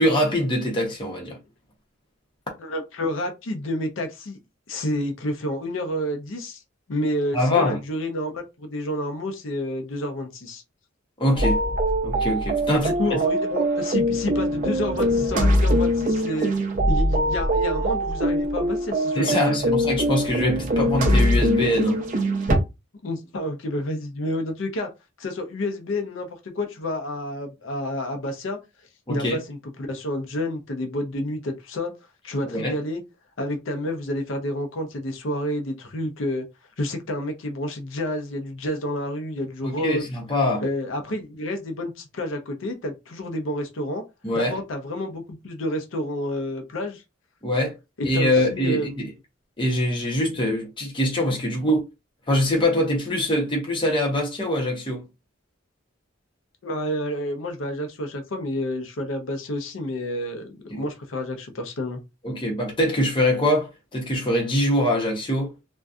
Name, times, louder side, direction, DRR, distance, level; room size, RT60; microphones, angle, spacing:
voice 1, 0.0-1.4 7.3-7.8 11.2-11.6 12.0-12.9 19.1-22.0 29.1-29.4 32.5-32.7 39.6-40.6 44.2-44.5 47.4-47.7 48.0-49.1 49.6-51.8 52.3-55.0 60.7-60.8 62.2-65.5, left 1 dB, 25° left, 0.8 m, -23 dB
voice 2, 2.6-4.4 4.7-6.6 6.9-10.6 12.7-16.5 16.9-19.7 23.0-24.9 25.2-28.6 29.1-31.9 32.2-33.0 33.4-36.5 36.8-40.0 40.6-44.0 44.3-47.0 48.0-49.1 56.6-62.0, left 1 dB, 90° left, 0.6 m, -29 dB
sound 1, 11.4-22.6, equal, 45° right, 0.6 m, -22 dB
2.6 x 2.2 x 2.3 m
head